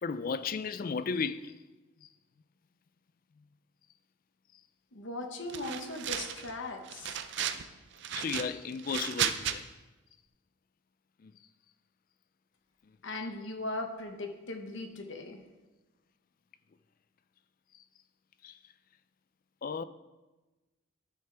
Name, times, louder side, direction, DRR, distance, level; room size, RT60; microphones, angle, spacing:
voice 1, 0.0-1.6 2.0-2.1 8.1-9.7 11.2-11.3 18.4-18.6 19.6-19.8, left 5 dB, 40° left, 0.3 m, -34 dB
voice 2, 4.9-7.2 13.0-15.4, left 2 dB, 60° left, 1.1 m, -38 dB
sound 1, 5.5-6.5 6.9-7.6 8.0-9.6, right 9 dB, 55° right, 0.5 m, -34 dB
12.5 x 6.6 x 3.4 m
head